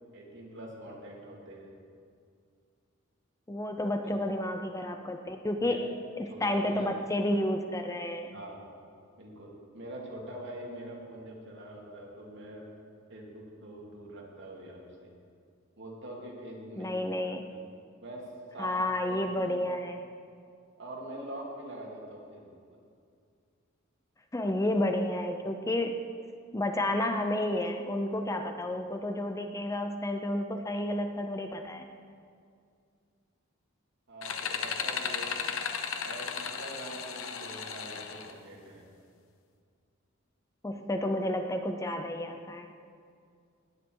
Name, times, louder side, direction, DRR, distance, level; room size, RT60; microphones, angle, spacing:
voice 1, 0.1-1.7 5.6-5.9 6.3-7.0 8.3-8.6 9.2-12.7 13.1-15.1 15.8-16.9 17.3-17.6 18.0-18.2 18.5-18.7 19.0-19.6 20.8-22.6 28.7-28.8 34.1-35.4 36.0-38.9, right 1 dB, 60° right, -2 dB, 2.8 m, -44 dB
voice 2, 3.5-5.9 6.2-8.3 16.8-17.5 18.6-20.0 24.3-26.0 26.5-31.9 40.6-42.7, left 1 dB, 15° left, 5 dB, 0.6 m, -31 dB
sound 1, 34.2-38.3, left 6 dB, 75° left, 1.0 m, -35 dB
19.0 x 9.2 x 4.7 m, 2.3 s
head